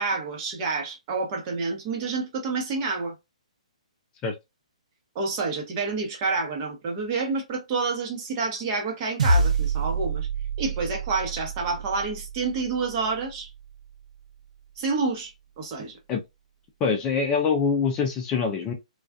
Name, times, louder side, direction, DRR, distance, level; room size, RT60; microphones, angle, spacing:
voice 1, 0.0-3.1 5.1-10.3 10.6-13.5 14.8-15.3 15.6-16.0, right 4 dB, 30° right, 0.9 m, -28 dB
sound 1, 9.2-13.8, right 3 dB, 70° right, 0.7 m, -27 dB
voice 2, 16.8-18.7, left 5 dB, 20° left, 0.4 m, -24 dB
2.3 x 2.3 x 2.3 m
hypercardioid pair, 145°, 4 cm